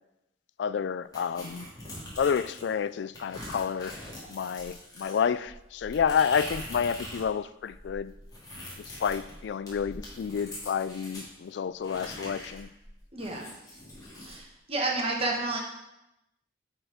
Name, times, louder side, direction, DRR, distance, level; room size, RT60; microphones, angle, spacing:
voice 1, 0.6-1.7 2.2-3.9 4.3-8.1 9.0-12.7, left 7 dB, 65° left, 0.3 m, -29 dB
sound 1, 1.1-2.7 3.1-7.3 7.6-11.3 11.8-14.4, left 1 dB, 20° left, 2.3 m, -43 dB
voice 2, 13.1-13.5 14.2-15.6, right 2 dB, 30° right, 1.4 m, -30 dB
8.9 x 4.5 x 5.0 m
head